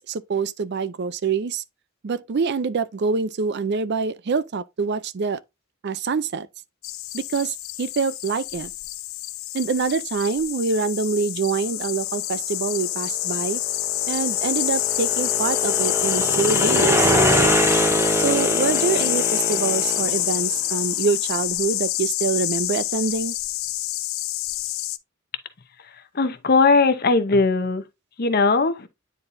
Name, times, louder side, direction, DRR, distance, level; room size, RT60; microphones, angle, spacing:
voice 1, 0.0-1.6 2.0-5.4 5.8-6.5 7.1-8.7 9.5-13.6 14.1-17.1 18.2-23.3, right 5 dB, 55° right, 0.4 m, -25 dB
sound 1, 6.8-25.0, left 16 dB, 75° left, 0.5 m, -26 dB
sound 2, 13.5-20.5, right 1 dB, 15° right, 0.8 m, -24 dB
voice 2, 25.9-27.8 28.2-28.9, left 3 dB, 50° left, 0.8 m, -19 dB
9.7 x 4.2 x 2.6 m
head